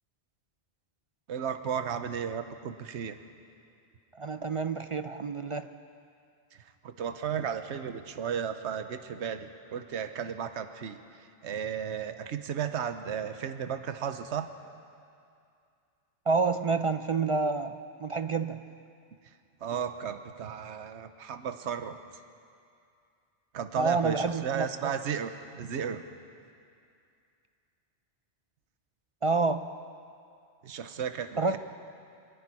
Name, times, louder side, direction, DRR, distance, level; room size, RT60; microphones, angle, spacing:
voice 1, 1.3-3.2 6.5-14.5 19.6-22.0 23.5-26.0 30.6-31.6, right 8 dB, 80° right, 9 dB, 1.1 m, -34 dB
voice 2, 4.1-5.7 16.3-18.6 23.8-24.9 29.2-29.7 31.4-31.6, right 4 dB, 40° right, 9 dB, 0.5 m, -28 dB
25.0 x 10.5 x 9.8 m, 2.4 s
omnidirectional pair, 1.2 m